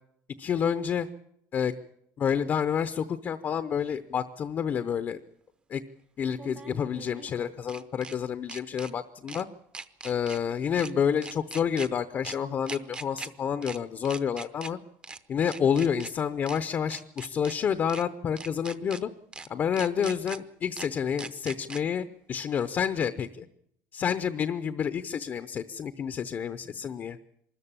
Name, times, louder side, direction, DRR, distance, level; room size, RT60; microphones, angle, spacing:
voice 1, 0.4-1.1 1.5-1.7 2.2-5.2 5.7-5.8 6.2-9.5 10.0-14.8 15.3-19.1 19.5-23.5 23.9-27.2, left 7 dB, 30° left, 12 dB, 0.7 m, -29 dB
sound 1, 3.9-4.0 6.3-8.2 8.5-8.9 9.3-9.4 9.7-10.4 10.7-10.9 11.2-11.9 12.2-12.4 12.7-13.3 13.6-13.8 14.0-14.7 15.0-15.2 15.5-16.1 16.5-16.6 16.9-17.5 17.9-18.0 18.4-19.0 19.3-19.5 19.8-20.4 20.8-20.9 21.2-21.8, right 4 dB, 15° right, 0.8 m, -41 dB
24.0 x 14.0 x 8.8 m, 0.72 s
cardioid pair, 165°, 7 cm